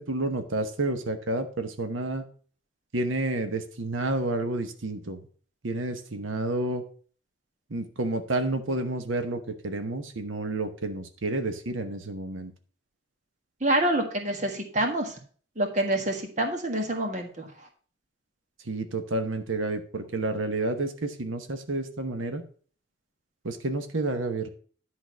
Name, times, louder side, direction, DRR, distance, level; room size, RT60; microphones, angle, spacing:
voice 1, 0.0-2.2 2.9-5.2 5.6-6.8 7.7-12.5 18.7-22.4 23.4-24.5, right 2 dB, 85° right, 7 dB, 1.1 m, -30 dB
voice 2, 13.6-15.2 15.6-17.5, right 1 dB, 35° right, 3 dB, 1.6 m, -27 dB
10.5 x 4.0 x 6.1 m, 0.43 s
head